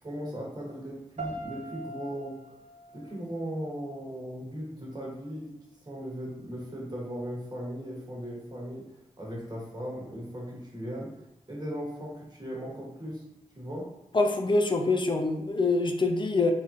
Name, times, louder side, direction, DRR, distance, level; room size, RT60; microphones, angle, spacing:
voice 1, 0.0-2.4 2.9-5.5 5.8-8.8 9.2-13.3 13.5-13.9, equal, 30° right, -4 dB, 1.3 m, -38 dB
sound 1, 1.2-4.2, right 2 dB, 60° right, 0.5 m, -42 dB
voice 2, 14.1-16.5, left 3 dB, 35° left, 4 dB, 0.4 m, -25 dB
3.4 x 2.7 x 2.5 m, 0.85 s
cardioid pair, 55°, 14 cm